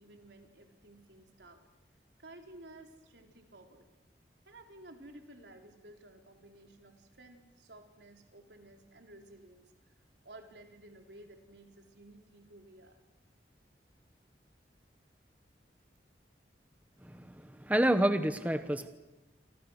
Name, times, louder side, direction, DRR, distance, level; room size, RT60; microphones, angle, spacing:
voice 1, 0.0-1.6 2.2-3.9 4.5-9.6 10.2-13.0, right 1 dB, 80° right, 3 dB, 3.9 m, -54 dB
voice 2, 17.0-18.9, right 1 dB, 10° right, 9 dB, 1.1 m, -29 dB
29.0 x 26.0 x 6.5 m, 1.0 s
head